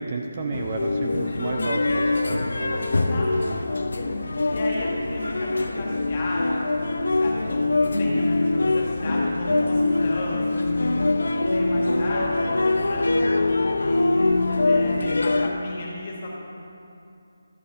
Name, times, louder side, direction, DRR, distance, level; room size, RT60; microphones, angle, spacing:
voice 1, 0.0-2.9 3.4-3.6 9.5-9.7, right 3 dB, 20° right, 2 dB, 0.4 m, -32 dB
sound 1, 0.5-15.5, left 2 dB, 75° left, 0.7 m, -23 dB
voice 2, 1.0-1.6 1.9-2.5 2.9-3.7 4.5-11.0 11.5-14.2 14.6-16.3, left 2 dB, 25° left, -4 dB, 1.6 m, -35 dB
12.5 x 7.2 x 5.4 m, 2.6 s
hypercardioid pair, 180°, 0 cm